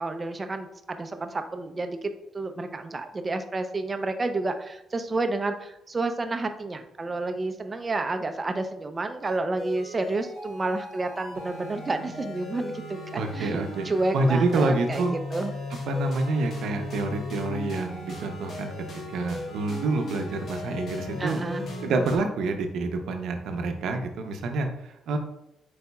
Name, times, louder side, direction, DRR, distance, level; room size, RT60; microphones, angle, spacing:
voice 1, 0.0-15.5 16.3-16.4 21.2-21.6, right 2 dB, 30° right, 7 dB, 0.5 m, -30 dB
sound 1, 9.2-22.2, left 2 dB, 55° left, 1.3 m, -37 dB
voice 2, 13.1-13.9 14.1-15.2 15.9-18.7 19.1-21.4 21.8-25.2, right 3 dB, 75° right, 5 dB, 0.6 m, -27 dB
4.7 x 4.0 x 2.3 m, 0.83 s
cardioid pair, 90°, 0 cm